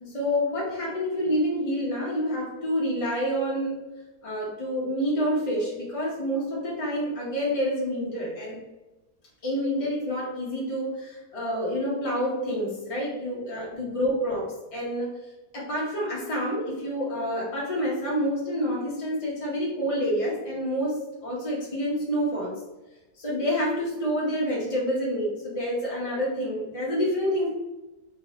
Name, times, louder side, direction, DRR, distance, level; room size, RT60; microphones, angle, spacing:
voice 1, 0.0-3.9 4.2-8.6 9.4-15.1 15.5-22.6 23.2-27.5, equal, 45° left, -6 dB, 0.4 m, -28 dB
3.5 x 2.8 x 2.6 m, 1.1 s
omnidirectional pair, 1.6 m